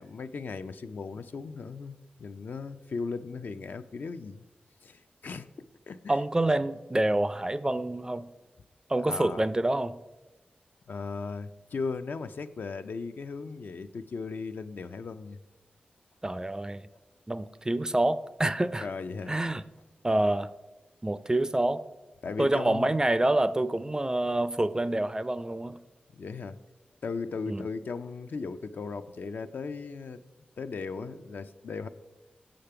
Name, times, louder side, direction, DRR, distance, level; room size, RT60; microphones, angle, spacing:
voice 1, 0.0-4.4 4.8-6.2 9.1-9.4 10.9-15.4 18.8-19.3 22.2-22.9 26.2-26.6 27.0-30.2 30.6-31.9, left 4 dB, 65° left, 0.4 m, -37 dB
voice 2, 6.1-8.3 8.9-10.0 16.2-16.9 17.3-18.9 19.3-19.6 20.0-20.5 21.0-21.8 22.4-25.8 27.5-27.7, right 1 dB, 20° right, 0.4 m, -27 dB
6.6 x 5.1 x 5.7 m
cardioid pair, 55°, 3 cm